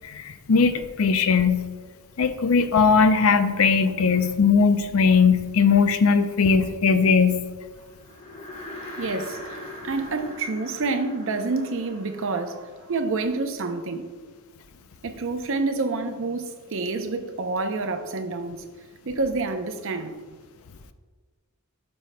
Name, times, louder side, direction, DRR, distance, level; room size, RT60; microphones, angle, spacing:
voice 1, 0.0-1.7 2.2-7.4, left 5 dB, 70° left, 0.5 m, -19 dB
sound 1, 8.0-13.4, left 1 dB, 30° left, 1.1 m, -41 dB
voice 2, 8.9-14.0 15.0-18.6 19.1-20.2, right 3 dB, 65° right, 0.6 m, -28 dB
12.0 x 5.3 x 2.2 m
head